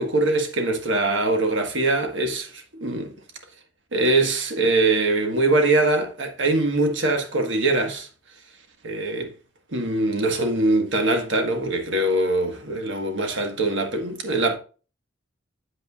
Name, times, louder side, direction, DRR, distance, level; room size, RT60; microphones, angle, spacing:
voice 1, 0.0-3.1 3.9-8.1 8.8-9.3 9.7-14.6, right 2 dB, 70° right, 1.4 m, -22 dB
8.2 x 7.9 x 2.4 m
head